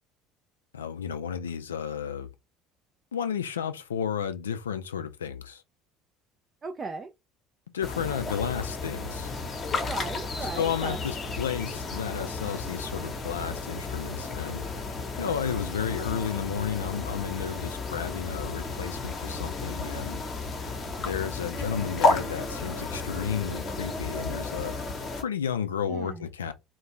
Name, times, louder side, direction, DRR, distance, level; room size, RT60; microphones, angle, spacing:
voice 1, 0.7-2.3 3.1-5.6 7.7-9.3 10.5-14.7 15.2-20.2 21.0-24.7 25.2-26.5, left 8 dB, 80° left, 0.3 m, -32 dB
voice 2, 6.6-7.1 9.8-11.0 25.9-26.2, right 4 dB, 30° right, 0.4 m, -36 dB
sound 1, 7.8-25.2, left 3 dB, 40° left, 0.8 m, -33 dB
sound 2, 9.0-24.4, equal, 5° right, 0.7 m, -48 dB
2.5 x 2.2 x 3.1 m
figure-of-eight pair, 65°, 0 cm